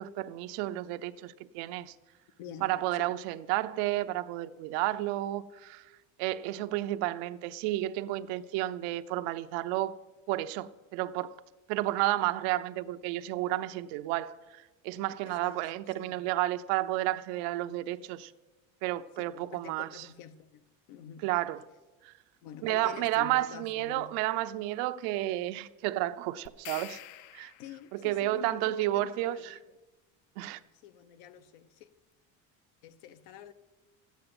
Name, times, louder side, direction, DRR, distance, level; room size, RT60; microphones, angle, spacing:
voice 1, 0.0-1.9 2.6-5.9 6.2-10.0 10.3-11.3 11.7-18.3 18.8-19.9 21.2-21.6 22.0-22.1 22.6-27.0 27.3-27.5 27.9-29.4 30.4-30.6, right 15 dB, 85° right, 0.8 m, -31 dB
voice 2, 2.4-3.1 15.2-16.2 19.2-21.3 22.4-24.2 27.6-29.8 30.3-31.9 32.8-33.5, left 9 dB, 85° left, 1.1 m, -48 dB
sound 1, 26.5-28.0, left 14 dB, 55° left, 0.6 m, -46 dB
14.0 x 9.5 x 7.9 m
cardioid pair, 175°, 37 cm